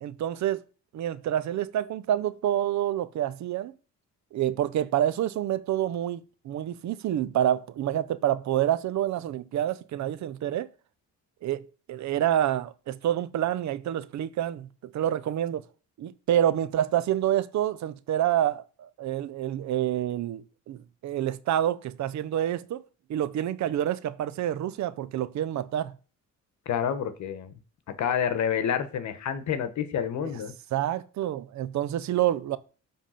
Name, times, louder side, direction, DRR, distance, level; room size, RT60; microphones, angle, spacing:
voice 1, 0.0-0.6 0.9-3.7 4.3-10.7 11.4-14.7 14.9-15.6 16.0-22.8 23.1-25.9 30.2-30.3 30.7-32.6, right 11 dB, 65° right, 0.7 m, -28 dB
voice 2, 26.7-27.5 28.0-30.5, left 8 dB, 65° left, 1.2 m, -28 dB
7.4 x 3.6 x 5.7 m
cardioid pair, 90°, 30 cm